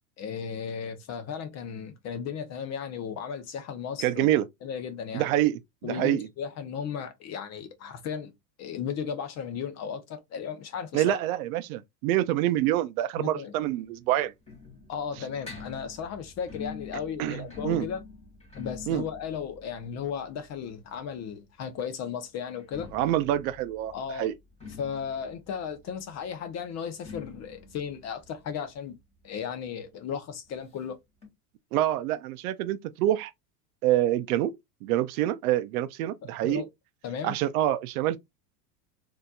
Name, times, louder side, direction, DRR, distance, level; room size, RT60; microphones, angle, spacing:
voice 1, 0.2-4.3 4.6-5.3 5.8-8.3 8.6-11.2 13.2-13.5 14.9-18.0 18.6-22.9 23.9-24.3 24.8-29.0 29.2-31.0 36.4-36.6 37.0-37.3, left 7 dB, 30° left, 0.7 m, -35 dB
voice 2, 4.0-4.4 5.1-6.3 10.9-14.3 17.2-17.9 18.9-19.0 22.9-24.3 31.7-33.3 33.8-36.7 37.2-38.2, right 13 dB, 60° right, 0.6 m, -26 dB
sound 1, 13.6-21.3 22.5-29.8 30.1-30.2 30.4-30.5 31.2-31.3, left 5 dB, 15° left, 2.0 m, -46 dB
4.0 x 2.8 x 2.3 m
supercardioid pair, 125°, 50 cm